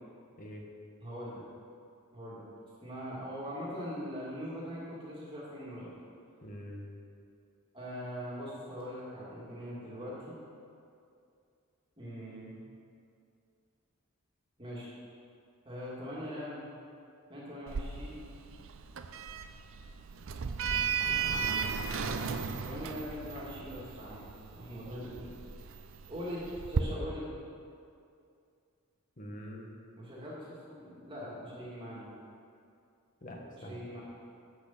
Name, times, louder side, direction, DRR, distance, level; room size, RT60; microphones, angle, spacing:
voice 1, 1.0-1.4 2.1-2.5 2.8-5.9 7.7-10.4 12.0-12.6 14.6-14.9 15.6-16.6 17.3-18.2 22.1-22.3 22.6-24.2 24.5-25.3 26.1-27.3 30.0-32.1 33.7-34.0, equal, 25° right, -7 dB, 2.1 m, -41 dB
voice 2, 6.4-7.0 21.9-22.2 29.2-29.7 33.2-33.8, equal, 40° left, 0 dB, 1.3 m, -44 dB
Sliding door, 17.7-26.8, right 6 dB, 65° right, 0.5 m, -36 dB
8.4 x 6.3 x 7.0 m, 2.4 s
head